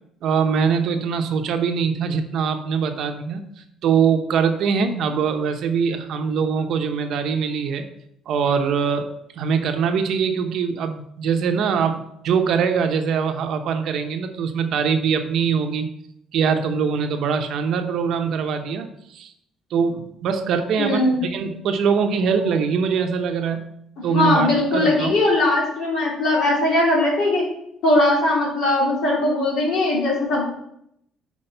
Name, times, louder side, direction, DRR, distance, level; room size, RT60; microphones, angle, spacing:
voice 1, 0.2-3.4 3.8-7.8 8.3-9.1 9.4-15.9 16.3-19.3 19.7-23.7 24.0-25.2, right 6 dB, 55° right, 6 dB, 0.7 m, -22 dB
voice 2, 20.8-21.2 24.1-27.4 27.8-30.5, left 2 dB, 60° left, -4 dB, 2.8 m, -20 dB
5.8 x 4.6 x 5.4 m, 0.75 s
cardioid pair, 165°, 0 cm